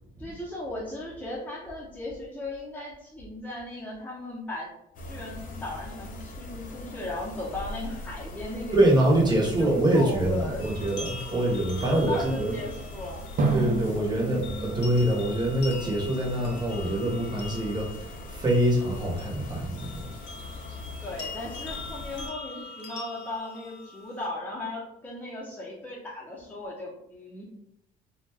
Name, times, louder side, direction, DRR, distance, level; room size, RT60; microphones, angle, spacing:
voice 1, 0.2-4.7 5.0-8.8 9.2-10.7 11.9-13.3 21.0-27.4, left 2 dB, 10° left, -6 dB, 0.8 m, -37 dB
sound 1, 4.9-22.3, left 1 dB, 45° left, 0.6 m, -41 dB
voice 2, 8.7-12.6 13.5-20.1, right 1 dB, 25° right, -2 dB, 0.9 m, -25 dB
sound 2, 10.6-24.3, left 3 dB, 85° left, 0.7 m, -44 dB
Drum, 13.4-16.3, right 3 dB, 45° right, 0.6 m, -31 dB
2.4 x 2.2 x 3.3 m, 0.81 s
cardioid pair, 110°, 19 cm